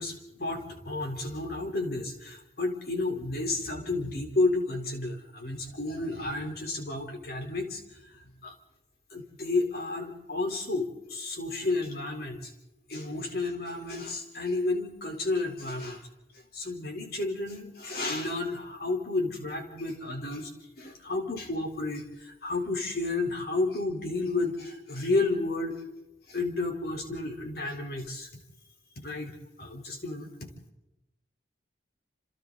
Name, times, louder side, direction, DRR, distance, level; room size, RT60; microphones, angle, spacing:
voice 1, 0.0-8.5 9.1-12.5 12.9-16.1 16.5-20.5 20.8-25.8 26.3-28.3 29.0-30.5, left 2 dB, 55° left, 2 dB, 4.0 m, -31 dB
28.5 x 28.0 x 4.1 m, 0.95 s
head